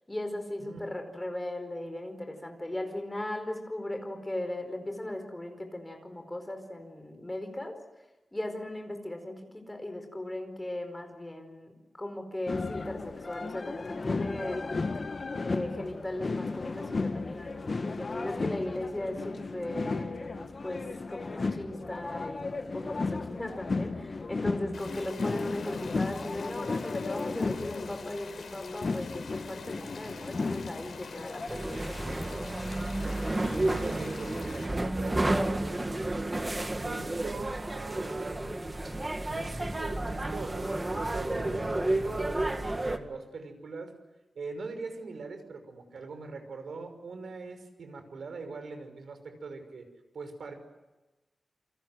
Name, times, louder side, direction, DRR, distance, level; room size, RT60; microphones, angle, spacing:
voice 1, 0.1-7.8 8.3-11.7 12.0-14.8 15.4-32.5, left 1 dB, 10° left, 6 dB, 4.8 m, -38 dB
sound 1, 12.5-31.5, left 3 dB, 40° left, 1.3 m, -34 dB
sound 2, 24.7-34.7, left 5 dB, 75° left, 5.0 m, -46 dB
sound 3, 31.5-43.0, right 1 dB, 20° right, 1.8 m, -31 dB
voice 2, 33.6-38.6 39.3-43.9 44.3-49.9 50.1-50.5, right 4 dB, 75° right, 7 dB, 5.8 m, -42 dB
29.0 x 25.5 x 7.9 m, 1.1 s
wide cardioid pair, 175°, 0 cm